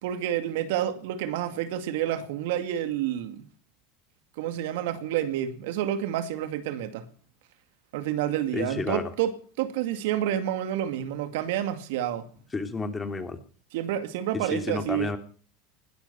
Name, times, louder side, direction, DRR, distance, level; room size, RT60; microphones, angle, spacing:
voice 1, 0.0-3.5 4.4-7.1 7.9-12.3 13.7-15.1, right 11 dB, 70° right, 2.2 m, -29 dB
voice 2, 8.5-9.1 12.5-13.4 14.3-15.2, left 3 dB, 20° left, 2.9 m, -31 dB
20.0 x 12.0 x 5.8 m
hypercardioid pair, 95°, 0 cm